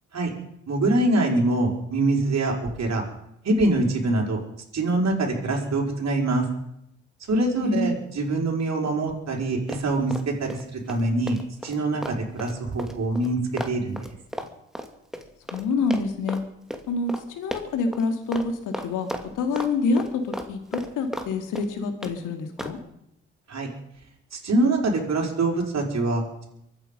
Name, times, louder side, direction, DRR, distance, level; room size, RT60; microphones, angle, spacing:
voice 1, 0.7-3.1 3.4-4.4 4.7-6.5 7.3-13.4 13.7-14.1 23.5-23.7 24.3-26.5, right 2 dB, 55° right, 0 dB, 5.2 m, -24 dB
Run, 9.7-10.6 10.9-15.7 15.9-16.4 16.7-16.8 17.1-17.2 17.5-18.0 18.3-18.5 18.7-19.7 20.0-21.3 21.5-22.1 22.6-22.8, equal, ahead, 2.6 m, -34 dB
voice 2, 15.5-16.4 16.9-19.1 19.4-22.8, left 3 dB, 80° left, 6 dB, 2.5 m, -27 dB
23.5 x 9.8 x 5.5 m, 0.77 s
hypercardioid pair, 45°, 31 cm